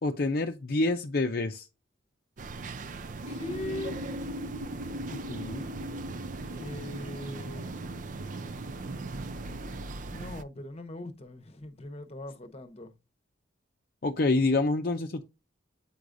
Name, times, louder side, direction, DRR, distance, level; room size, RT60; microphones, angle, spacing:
voice 1, 0.0-1.7 5.3-5.6 14.0-15.2, left 2 dB, 50° left, 0.6 m, -27 dB
sound 1, 2.4-10.4, right 3 dB, 45° right, 0.4 m, -40 dB
sound 2, 3.2-9.9, left 1 dB, 90° right, 1.2 m, -41 dB
voice 2, 3.3-4.0 6.5-8.0 10.1-12.9, left 2 dB, 35° left, 0.9 m, -40 dB
8.5 x 4.8 x 2.6 m
head